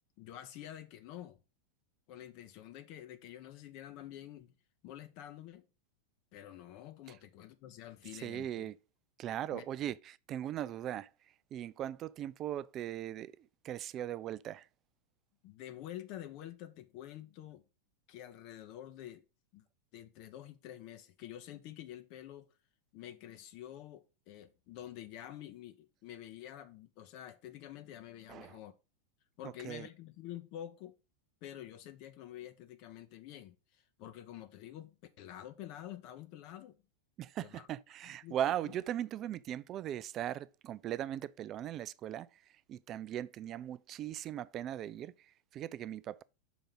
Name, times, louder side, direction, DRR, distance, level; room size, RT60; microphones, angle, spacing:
voice 1, 0.2-1.4 2.1-4.5 4.8-5.7 6.3-8.7 9.5-9.7 15.4-17.6 18.1-19.2 19.5-19.6 19.9-22.5 22.9-28.7 29.4-31.0 31.4-36.8 37.4-37.7 38.0-38.4, left 12 dB, 45° left, 0.7 m, -48 dB
voice 2, 8.2-8.8 9.2-11.1 11.5-14.7 28.3-28.6 29.4-29.9 37.2-46.2, right 11 dB, 30° right, 0.3 m, -39 dB
6.0 x 3.8 x 5.4 m
figure-of-eight pair, 90°, 0 cm